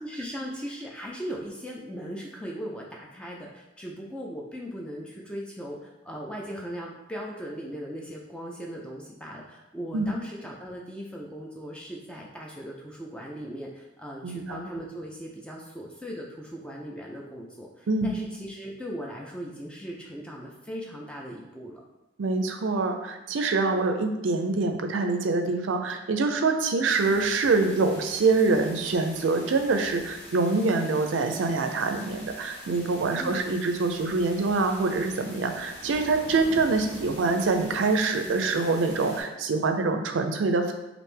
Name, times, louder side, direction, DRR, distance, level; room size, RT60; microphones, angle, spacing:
voice 1, 0.0-21.8 33.1-33.5 36.9-37.1, equal, 5° left, -2 dB, 0.3 m, -38 dB
voice 2, 14.2-14.6 17.9-18.1 22.2-40.7, right 3 dB, 85° right, 5 dB, 0.4 m, -25 dB
sound 1, 26.8-39.2, equal, 35° left, 1.3 m, -45 dB
3.3 x 2.5 x 3.2 m, 1.0 s
head